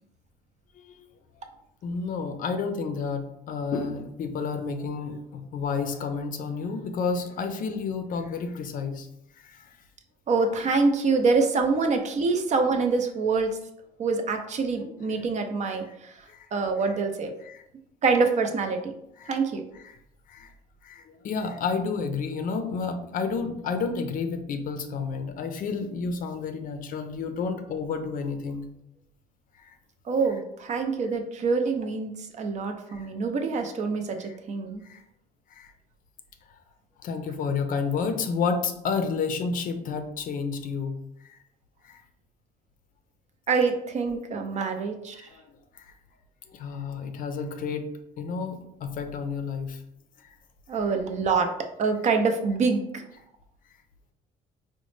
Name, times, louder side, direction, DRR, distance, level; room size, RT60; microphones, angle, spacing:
voice 1, 1.8-9.1 9.4-9.7 14.8-14.9 16.3-16.5 17.4-17.6 19.2-19.4 19.8-20.0 20.3-20.5 20.8-28.6 29.6-29.7 32.9-33.1 34.2-34.4 34.8-35.0 35.5-35.7 37.0-41.0 41.2-41.4 41.8-42.0 45.1-45.4 45.8-45.9 46.5-47.9 48.2-49.8 50.2-50.4, left 5 dB, 55° left, 7 dB, 0.5 m, -31 dB
voice 2, 10.3-13.6 14.0-16.1 16.5-17.3 18.0-18.9 19.3-19.6 30.1-34.8 43.5-45.2 50.7-53.0, right 4 dB, 45° right, 5 dB, 0.5 m, -25 dB
3.9 x 2.1 x 3.1 m, 0.79 s
cardioid pair, 110°, 17 cm